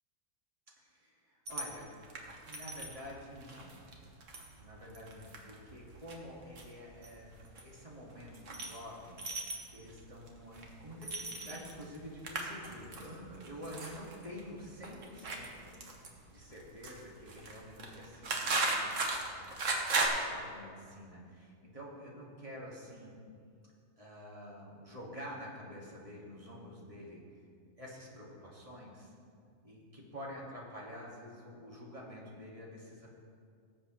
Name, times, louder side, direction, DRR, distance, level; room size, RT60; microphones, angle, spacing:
voice 1, 0.8-1.9 2.2-3.8 4.6-9.2 9.7-18.8 19.2-19.5 20.0-23.2 24.0-27.2 27.8-29.1 29.6-33.1, equal, 25° right, -4 dB, 2.0 m, -48 dB
sound 1, 1.5-20.1, right 3 dB, 65° right, 1.5 m, -39 dB
18.0 x 7.7 x 3.1 m, 2.2 s
omnidirectional pair, 1.4 m